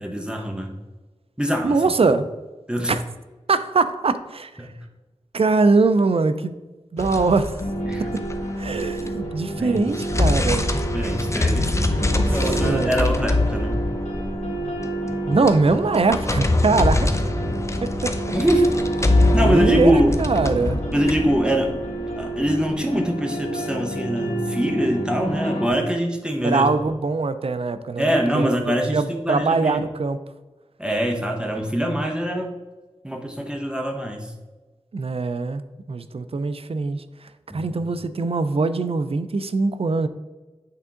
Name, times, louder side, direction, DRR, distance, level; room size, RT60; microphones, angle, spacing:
voice 1, 0.0-0.7 1.4-1.8 2.7-3.0 4.6-4.7 7.8-8.1 9.6-9.8 10.9-12.0 12.3-13.8 18.3-18.7 19.3-20.2 20.9-21.8 22.2-26.7 28.0-29.8 30.8-32.5 33.0-34.3 37.5-37.8, equal, 10° right, 1 dB, 0.9 m, -23 dB
voice 2, 1.6-2.3 2.9-3.0 3.5-4.5 5.3-6.5 6.9-7.6 8.6-10.8 11.8-12.3 12.6-12.9 15.3-17.1 17.8-18.1 19.4-20.8 26.4-28.5 28.9-30.2 34.9-35.6 35.9-37.0 37.5-40.1, right 3 dB, 55° right, 11 dB, 0.4 m, -22 dB
sound 1, 7.0-9.3 9.7-22.7, left 2 dB, 25° left, 0.6 m, -24 dB
sound 2, 7.6-25.7, right 1 dB, 80° left, 1.6 m, -29 dB
8.4 x 3.6 x 3.7 m, 1.2 s
wide cardioid pair, 55°, 12 cm